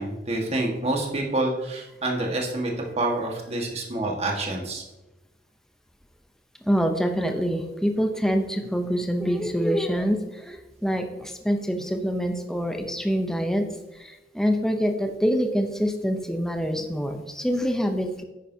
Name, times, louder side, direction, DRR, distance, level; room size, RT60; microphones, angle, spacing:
voice 1, 0.0-4.8, right 2 dB, 35° right, 0 dB, 1.6 m, -27 dB
voice 2, 6.7-13.7 13.9-18.2, equal, 5° left, 4 dB, 0.7 m, -25 dB
9.9 x 9.2 x 2.8 m, 1.0 s
head